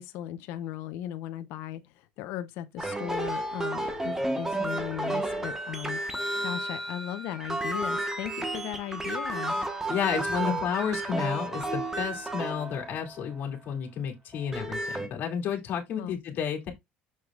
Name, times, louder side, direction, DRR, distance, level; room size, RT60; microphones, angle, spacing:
voice 1, 0.0-6.0 6.4-9.5 10.5-10.6 16.0-16.2, left 12 dB, 70° left, 0.7 m, -37 dB
sound 1, 2.8-13.3 14.3-15.1, right 1 dB, 10° right, 1.2 m, -32 dB
voice 2, 9.9-16.7, left 8 dB, 50° left, 2.6 m, -31 dB
6.8 x 6.3 x 2.4 m
cardioid pair, 120°, 4 cm